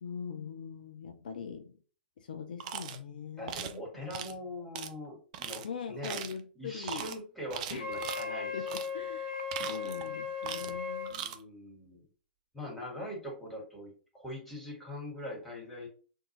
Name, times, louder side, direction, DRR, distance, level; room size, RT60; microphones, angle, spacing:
voice 1, 0.0-1.8 2.2-3.8 5.6-7.1 7.7-7.8 8.5-9.4 9.7-11.2, left 6 dB, 60° left, 0.4 m, -42 dB
sound 1, 2.6-3.0 3.5-3.8 4.1-4.3 4.7-4.9 5.3-5.6 6.0-6.4 6.8-7.2 7.5-8.3 8.7-8.9 9.3-10.1 10.4-10.8 11.1-11.4, right 9 dB, 45° right, 0.4 m, -39 dB
voice 2, 3.4-6.2 6.5-8.7 11.1-12.0 12.5-15.9, left 1 dB, ahead, 1.5 m, -42 dB
Wind instrument woodwind instrument, 7.8-11.1, left 6 dB, 25° right, 1.1 m, -37 dB
2.6 x 2.3 x 3.0 m
figure-of-eight pair, 105°, 5 cm